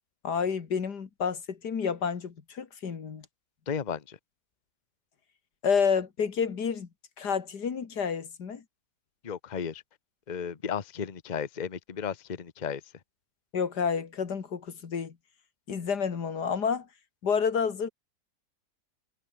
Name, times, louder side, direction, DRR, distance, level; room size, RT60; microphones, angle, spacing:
voice 1, 0.2-3.3 5.6-6.9 7.2-8.6 13.5-15.1 15.7-16.9 17.2-17.9, left 6 dB, 85° left, 2.5 m, -29 dB
voice 2, 3.7-4.2 9.2-9.8 10.3-12.8, left 7 dB, 30° left, 1.1 m, -34 dB
omnidirectional pair, 1.7 m